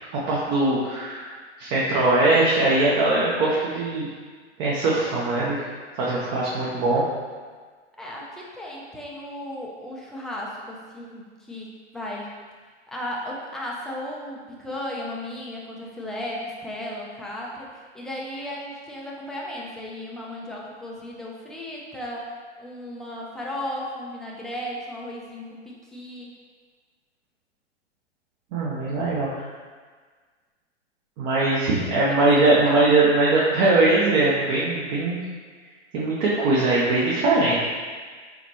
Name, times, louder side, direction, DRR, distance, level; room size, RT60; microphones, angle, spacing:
voice 1, 0.3-4.1 4.6-5.6 6.0-7.0 28.5-29.4 31.2-35.2 35.9-37.6, right 2 dB, 40° right, -6 dB, 0.9 m, -21 dB
voice 2, 8.0-11.7 11.9-12.3 12.9-22.3 22.6-26.3 31.5-32.8, left 1 dB, ahead, -4 dB, 0.4 m, -35 dB
4.1 x 4.0 x 3.0 m, 1.5 s
hypercardioid pair, 110°, 36 cm